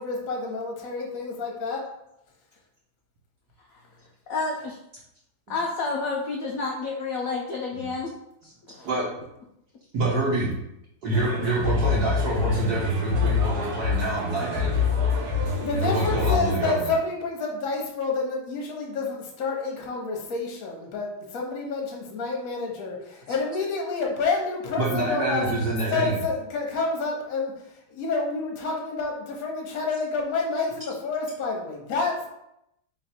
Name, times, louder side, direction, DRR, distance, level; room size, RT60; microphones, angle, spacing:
voice 1, 0.0-1.8 15.6-25.5 25.9-27.5 27.9-32.3, left 3 dB, 55° left, 0 dB, 1.1 m, -29 dB
voice 2, 4.3-4.8 5.5-8.1 8.7-8.9, left 3 dB, 85° left, -1 dB, 0.7 m, -29 dB
voice 3, 9.9-10.5 11.0-14.9 15.8-16.9 24.8-26.2, right 2 dB, 60° right, -6 dB, 1.4 m, -26 dB
sound 1, 11.1-16.4, left 5 dB, 85° right, 1.8 m, -26 dB
3.8 x 3.2 x 4.3 m, 0.82 s
omnidirectional pair, 2.2 m